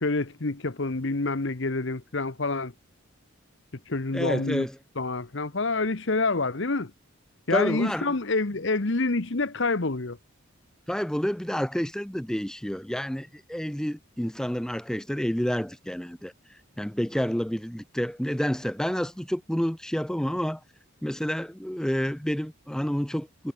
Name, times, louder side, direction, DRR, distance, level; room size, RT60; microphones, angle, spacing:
voice 1, 0.0-2.7 3.9-4.7 5.0-6.9 7.5-10.2, left 3 dB, 60° left, 1.1 m, -27 dB
voice 2, 4.1-4.7 7.5-8.1 10.9-16.3 16.8-20.6 21.0-23.5, equal, 5° left, 0.6 m, -29 dB
head